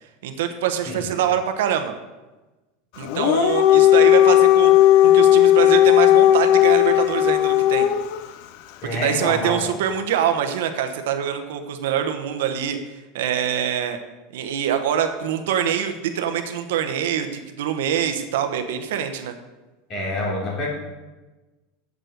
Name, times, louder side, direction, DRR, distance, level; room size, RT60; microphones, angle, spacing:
voice 1, 0.2-1.9 3.0-4.7 5.0-7.9 8.9-12.8 13.1-14.0 14.3-19.3, right 9 dB, 85° right, 7 dB, 1.1 m, -24 dB
Dog, 3.0-8.2, left 12 dB, 55° left, 0.5 m, -15 dB
voice 2, 8.8-9.6 19.9-20.7, left 1 dB, 30° left, -4 dB, 3.7 m, -26 dB
7.9 x 7.5 x 6.6 m, 1.1 s
supercardioid pair, 160°, 0 cm